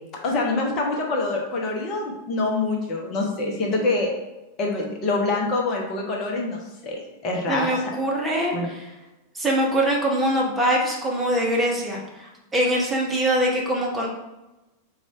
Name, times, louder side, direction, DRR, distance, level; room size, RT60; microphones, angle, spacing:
voice 1, 0.2-4.1 4.6-7.8 8.5-8.7, left 3 dB, 35° left, -1 dB, 0.9 m, -25 dB
voice 2, 7.5-8.9 9.3-14.1, right 1 dB, 10° right, -2 dB, 0.9 m, -23 dB
4.2 x 2.4 x 4.5 m, 1.0 s
figure-of-eight pair, 90°, 0 cm